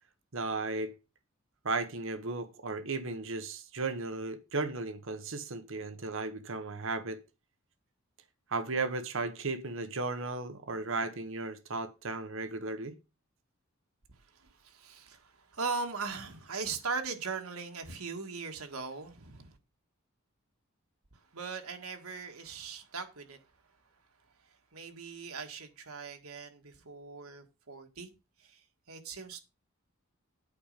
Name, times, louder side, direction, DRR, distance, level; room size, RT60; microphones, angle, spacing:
voice 1, 0.3-0.9 1.6-7.2 8.5-13.0, right 3 dB, 65° right, 1.1 m, -35 dB
voice 2, 14.6-15.2 15.5-19.5 21.3-23.4 24.7-28.1 28.5-28.6 28.9-29.4, right 4 dB, 90° right, 1.7 m, -39 dB
8.6 x 5.1 x 6.7 m
head